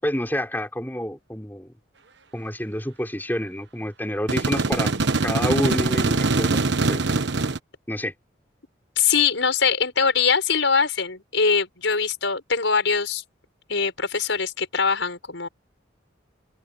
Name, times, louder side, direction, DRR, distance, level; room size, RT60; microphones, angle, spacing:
voice 1, 0.0-1.7 2.3-4.9 5.2-6.6 6.9-7.1 7.9-8.1, equal, 10° left, 4.6 m, -28 dB
sound 1, 4.3-7.6, right 3 dB, 70° right, 1.2 m, -22 dB
voice 2, 9.0-13.2 13.7-15.5, left 5 dB, 85° left, 5.3 m, -22 dB
open air
head